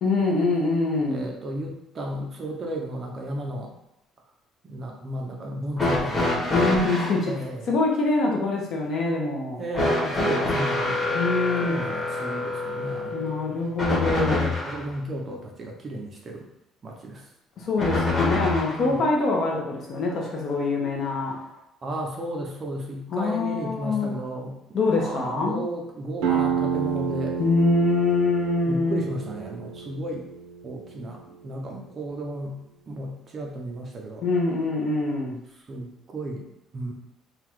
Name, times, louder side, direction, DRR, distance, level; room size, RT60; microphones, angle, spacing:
voice 1, 0.0-1.3 6.5-7.4 7.7-9.6 11.1-11.8 13.1-14.5 17.6-21.3 23.1-24.1 24.7-25.6 27.4-29.0 34.2-35.4, left 3 dB, 45° left, -1 dB, 0.9 m, -24 dB
voice 2, 1.1-3.7 4.6-6.7 7.2-7.7 9.6-11.2 11.6-13.3 14.7-16.5 16.8-17.2 18.6-19.0 21.8-24.5 24.9-27.4 28.7-30.3 30.6-32.6 32.9-34.2 35.7-36.9, right 1 dB, 25° right, 0 dB, 0.6 m, -34 dB
sound 1, 5.8-7.2 9.7-14.8 17.8-18.8 20.1-20.2 21.2-21.3, left 2 dB, 10° left, 1.1 m, -26 dB
sound 2, 26.2-31.6, right 7 dB, 85° right, 0.8 m, -30 dB
3.8 x 2.4 x 4.6 m, 0.83 s
cardioid pair, 175°, 0 cm